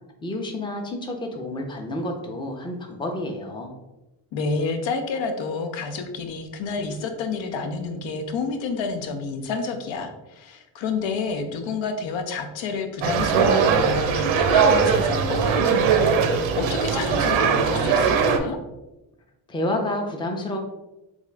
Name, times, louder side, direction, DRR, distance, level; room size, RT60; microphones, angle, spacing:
voice 1, 0.2-3.7 19.5-20.6, left 1 dB, 10° left, 2 dB, 0.5 m, -29 dB
voice 2, 4.3-18.6, left 4 dB, 70° left, 6 dB, 0.7 m, -29 dB
sound 1, 13.0-18.4, right 6 dB, 80° right, 0.6 m, -20 dB
3.5 x 2.5 x 3.3 m, 1.0 s
cardioid pair, 70°, 47 cm